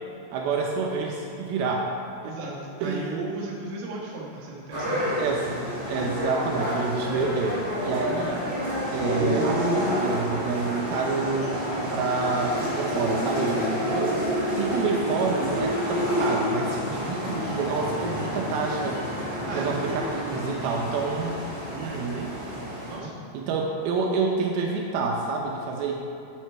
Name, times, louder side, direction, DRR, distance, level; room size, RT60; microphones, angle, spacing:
voice 1, 0.3-1.9 2.2-2.3 2.8-3.1 5.2-8.4 8.9-14.2 14.6-19.0 19.5-21.3 21.7-22.3 23.3-25.9, right 4 dB, 80° right, 0 dB, 2.6 m, -28 dB
voice 2, 2.2-5.1 13.8-14.1 19.5-19.7 22.9-23.1, right 3 dB, 55° right, -4 dB, 2.4 m, -35 dB
sound 1, 4.7-23.0, equal, 25° right, 1.9 m, -29 dB
9.0 x 7.6 x 4.5 m, 2.7 s
omnidirectional pair, 4.4 m